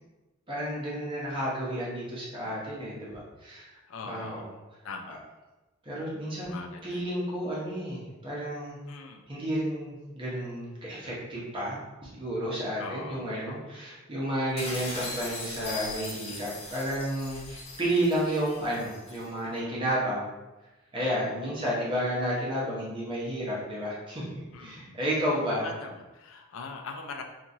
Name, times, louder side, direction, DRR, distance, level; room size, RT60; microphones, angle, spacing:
voice 1, 0.5-3.7 4.1-4.5 5.8-6.5 6.8-8.8 9.3-11.8 12.0-20.3 20.9-25.7, equal, 25° right, -6 dB, 0.9 m, -31 dB
voice 2, 3.7-4.5 4.8-5.2 6.4-7.0 8.9-9.3 12.8-13.3 19.4-19.8 21.0-21.3 24.5-25.0 25.5-27.2, left 4 dB, 70° left, 3 dB, 0.4 m, -42 dB
sound 1, 14.6-19.3, left 2 dB, 30° left, 0.6 m, -40 dB
3.0 x 2.4 x 2.6 m, 1.1 s
head